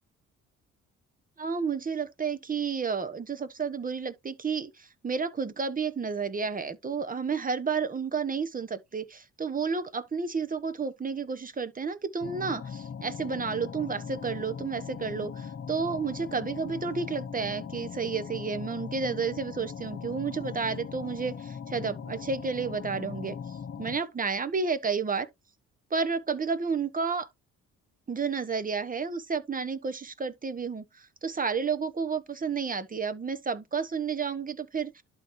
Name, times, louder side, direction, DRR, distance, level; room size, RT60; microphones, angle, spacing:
voice 1, 1.4-25.3 25.9-27.3 28.1-35.0, right 5 dB, 30° right, 1.2 m, -31 dB
sound 1, 12.2-24.0, left 7 dB, 45° left, 1.2 m, -40 dB
11.5 x 3.9 x 3.2 m
cardioid pair, 90°, 30 cm